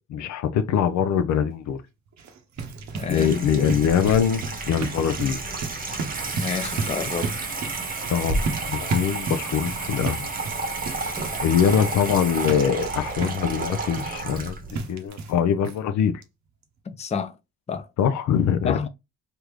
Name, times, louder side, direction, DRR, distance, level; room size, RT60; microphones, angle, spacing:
voice 1, 0.1-1.8 3.1-5.5 8.1-8.4 8.6-10.3 11.4-16.1 18.0-18.8, left 8 dB, 70° left, 0.5 m, -23 dB
sound 1, 2.1-15.4 15.6-15.8 16.2-16.3 16.6-16.7, right 4 dB, 65° right, 0.8 m, -34 dB
Water tap faucet / Sink (filling or washing), 2.6-14.8, right 3 dB, 30° right, 0.9 m, -31 dB
voice 2, 2.9-3.8 6.3-7.3 16.9-17.4 17.7-17.9 18.6-18.9, left 5 dB, 20° left, 0.5 m, -30 dB
3.4 x 2.5 x 3.0 m
cardioid pair, 90°, 30 cm